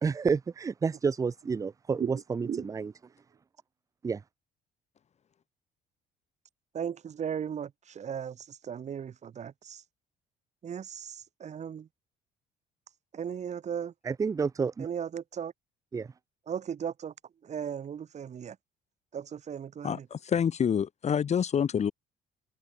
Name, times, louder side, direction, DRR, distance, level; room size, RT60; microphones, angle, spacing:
voice 1, 0.0-2.9 4.0-4.2 14.1-14.9 15.9-16.1, right 5 dB, 20° right, 0.4 m, -29 dB
voice 2, 2.0-2.9 6.7-9.8 10.6-11.9 13.1-13.9 14.8-15.5 16.5-17.1 17.4-18.6 19.1-20.1, right 8 dB, 45° right, 2.2 m, -37 dB
voice 3, 19.8-21.9, left 8 dB, 40° left, 1.9 m, -27 dB
cardioid pair, 110°, 17 cm